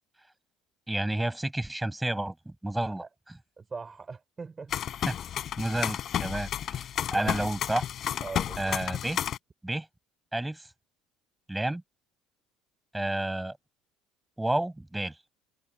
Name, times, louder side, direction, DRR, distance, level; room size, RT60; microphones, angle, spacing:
voice 1, 0.9-3.0 5.1-5.2 5.6-6.8 7.1-7.9 8.6-9.2 9.6-9.9 10.3-10.7 11.5-11.8 12.9-13.6 14.4-15.2, right 1 dB, 5° right, 7.6 m, -30 dB
voice 2, 3.6-4.7 7.1-7.3 8.2-8.8, right 4 dB, 25° right, 5.1 m, -41 dB
sound 1, 4.7-9.4, left 10 dB, 50° left, 5.2 m, -32 dB
supercardioid pair, 105°, 0 cm